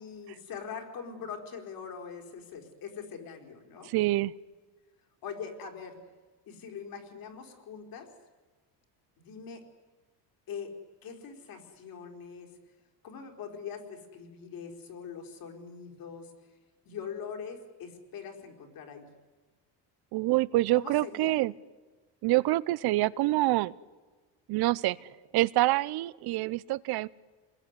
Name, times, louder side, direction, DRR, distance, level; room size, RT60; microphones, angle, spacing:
voice 1, 0.0-3.9 5.2-6.0 6.5-8.1 9.2-9.6 10.5-10.7 11.0-12.5 13.0-16.5 16.8-19.1 20.7-21.3, left 6 dB, 50° left, 3 dB, 4.6 m, -42 dB
voice 2, 3.9-4.3 20.1-21.5 22.2-23.7 24.5-25.0 25.3-27.1, right 18 dB, 60° right, 20 dB, 0.8 m, -26 dB
28.0 x 21.0 x 9.8 m, 1.3 s
cardioid pair, 145°, 44 cm